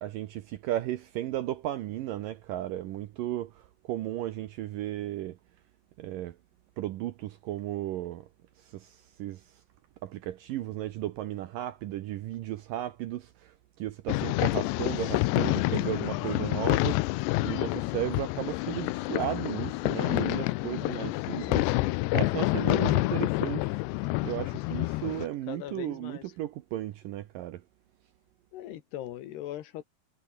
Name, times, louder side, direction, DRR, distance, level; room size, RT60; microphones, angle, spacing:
voice 1, 0.0-5.4 6.0-6.4 6.8-8.3 8.6-9.6 10.0-23.7 24.2-27.6, right 13 dB, 75° right, 2.1 m, -35 dB
sound 1, 14.1-25.3, left 21 dB, 90° left, 2.8 m, -28 dB
voice 2, 25.5-26.3 28.5-29.8, left 13 dB, 75° left, 3.5 m, -40 dB
omnidirectional pair, 4.9 m